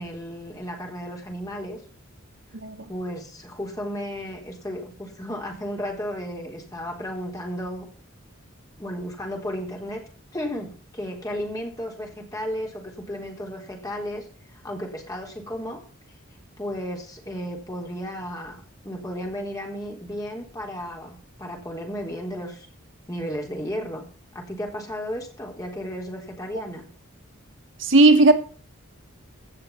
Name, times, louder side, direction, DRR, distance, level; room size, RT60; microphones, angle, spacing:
voice 1, 0.0-1.8 2.9-7.9 8.8-10.0 10.3-15.8 16.6-22.7 23.1-24.0 24.3-26.9, equal, 15° left, 3.9 m, -34 dB
voice 2, 27.8-28.3, right 2 dB, 60° right, 1.4 m, -14 dB
16.5 x 6.6 x 7.3 m
head